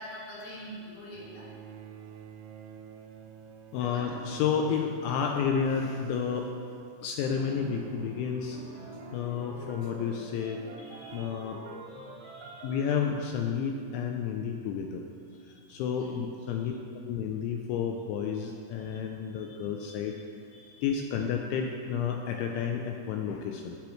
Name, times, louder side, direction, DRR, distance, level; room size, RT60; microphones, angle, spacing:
voice 1, 0.0-1.5 3.7-4.1 10.3-10.5 10.8-11.4 11.9-12.8 15.3-15.7 16.0-16.1 16.6-16.7 18.8-19.0 19.3-20.2 20.5-21.0, equal, 65° left, -7 dB, 3.6 m, -47 dB
Bowed string instrument, 1.1-6.6 7.7-7.8, right 7 dB, 85° right, 3.3 m, -50 dB
voice 2, 3.7-6.5 7.0-8.6 9.1-10.6 11.1-11.6 12.6-15.0 15.5-16.7 17.0-20.2 20.8-23.8, left 7 dB, 85° left, 3 dB, 2.6 m, -31 dB
sound 1, 4.0-6.0 7.2-13.1, right 2 dB, 65° right, 2.1 m, -46 dB
12.5 x 10.5 x 3.1 m, 2.4 s
omnidirectional pair, 5.9 m